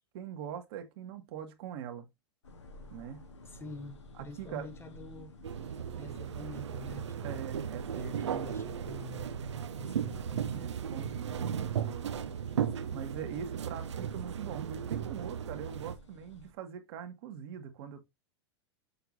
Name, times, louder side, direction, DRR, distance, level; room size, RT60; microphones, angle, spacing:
voice 1, 0.1-2.1 2.9-3.2 4.4-4.7 7.2-8.5 10.5-12.1 12.9-18.0, right 8 dB, 60° right, 1.6 m, -42 dB
sound 1, 2.4-16.5, left 2 dB, 85° left, 1.9 m, -53 dB
voice 2, 3.4-5.4 6.0-7.5 7.9-11.5, left 1 dB, 15° left, 1.6 m, -47 dB
sound 2, 5.4-16.0, right 8 dB, 80° right, 0.7 m, -36 dB
6.8 x 5.9 x 2.7 m
hypercardioid pair, 100°, 15 cm